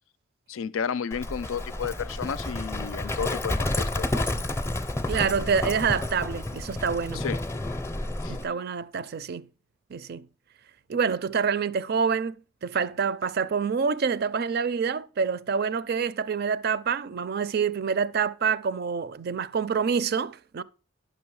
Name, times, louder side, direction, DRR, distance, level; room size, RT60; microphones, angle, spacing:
voice 1, 0.5-4.2 7.1-7.4 8.2-8.4, left 6 dB, 85° left, 0.4 m, -32 dB
Livestock farm animals working animals, 1.1-8.5, left 1 dB, 15° left, 0.5 m, -30 dB
voice 2, 5.1-7.2 8.3-9.5 9.9-10.3 10.9-12.3 12.6-20.6, right 6 dB, 50° right, 0.4 m, -27 dB
10.0 x 6.1 x 4.7 m
head